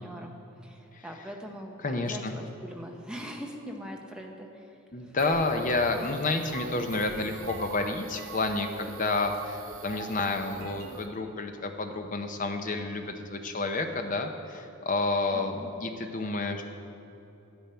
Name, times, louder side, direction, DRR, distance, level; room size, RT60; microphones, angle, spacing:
voice 1, 0.0-0.4 0.6-4.7 5.0-5.1 15.3-15.7, equal, 5° right, 1 dB, 0.8 m, -41 dB
voice 2, 1.8-2.4 4.9-16.6, left 3 dB, 35° left, 5 dB, 0.7 m, -30 dB
sound 1, 5.2-11.1, right 5 dB, 60° right, 0.8 m, -42 dB
10.5 x 10.5 x 4.4 m, 2.8 s
head